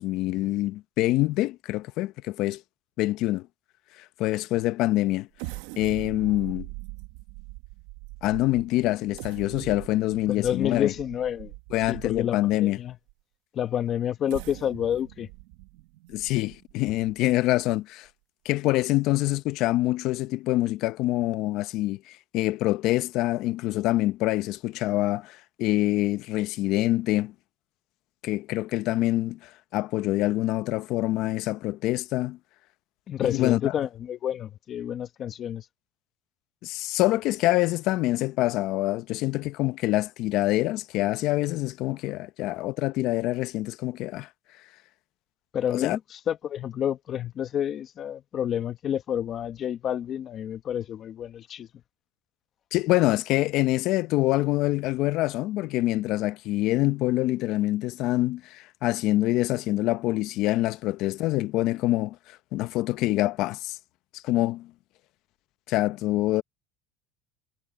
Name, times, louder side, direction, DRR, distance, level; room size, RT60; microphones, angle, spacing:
voice 1, 0.0-2.6 3.0-3.5 4.2-5.3 5.8-6.7 8.2-10.9 11.7-12.8 16.1-18.1 18.4-27.3 28.2-32.4 33.2-33.7 36.6-44.3 45.7-46.0 52.7-62.2 62.5-63.8 64.1-64.7 65.7-66.4, left 17 dB, 65° left, 0.8 m, -25 dB
sound 1, 5.4-12.5 13.1-13.2 14.1-17.6 18.1-18.2 18.6-18.8, right 21 dB, 80° right, 1.2 m, -42 dB
voice 2, 10.3-11.5 11.9-12.9 13.5-15.3 33.1-35.6 45.5-51.7, left 9 dB, 45° left, 1.3 m, -29 dB
supercardioid pair, 110°, 0 cm